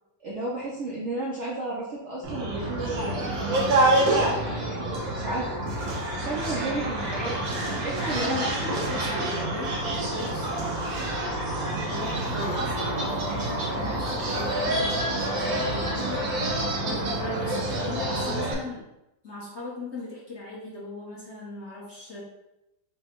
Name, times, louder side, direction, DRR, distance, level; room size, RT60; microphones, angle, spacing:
voice 1, 0.2-3.8 4.1-8.5 9.1-9.2, right 2 dB, 60° right, -5 dB, 0.8 m, -34 dB
sound 1, 2.2-18.5, right 1 dB, 90° right, 1.7 m, -27 dB
voice 2, 8.0-11.2 11.6-18.8 19.2-22.2, left 2 dB, 45° left, -6 dB, 1.1 m, -38 dB
5.0 x 2.2 x 4.4 m, 0.90 s
omnidirectional pair, 2.0 m